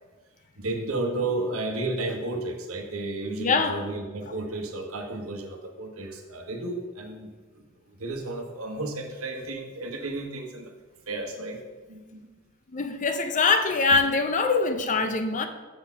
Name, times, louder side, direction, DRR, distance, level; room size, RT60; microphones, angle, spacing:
voice 1, 0.6-10.7 11.1-11.6 11.9-12.4 13.9-14.0, right 2 dB, 80° right, 3 dB, 1.1 m, -33 dB
voice 2, 3.4-3.8 12.7-15.5, left 4 dB, 35° left, 7 dB, 0.5 m, -23 dB
6.8 x 4.2 x 5.5 m, 1.3 s
head